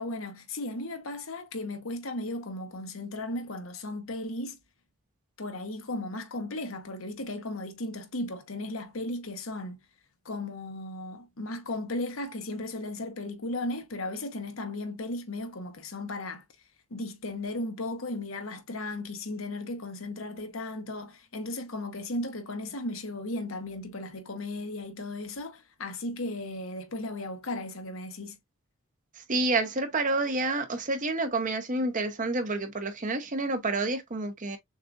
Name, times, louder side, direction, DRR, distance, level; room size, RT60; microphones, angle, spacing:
voice 1, 0.0-4.6 5.4-9.8 10.2-16.4 16.9-28.4, left 2 dB, 70° left, 1.0 m, -36 dB
voice 2, 29.3-34.6, right 2 dB, 40° right, 0.9 m, -29 dB
6.5 x 2.4 x 2.5 m
head